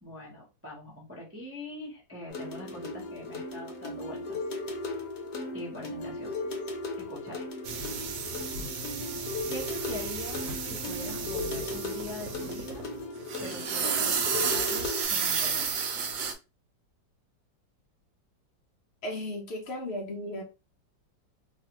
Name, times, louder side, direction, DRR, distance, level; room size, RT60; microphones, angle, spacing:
voice 1, 0.0-4.4 5.5-6.4 7.0-7.5 9.5-10.4 10.7-12.8 13.4-15.9, left 1 dB, 15° right, 0.5 m, -43 dB
sound 1, 2.3-15.0, left 2 dB, 65° left, 1.2 m, -37 dB
sound 2, 7.7-12.9 13.2-16.3, right 6 dB, 90° right, 1.3 m, -32 dB
voice 2, 19.0-20.4, left 1 dB, 80° left, 0.5 m, -35 dB
3.2 x 2.4 x 2.9 m
omnidirectional pair, 2.0 m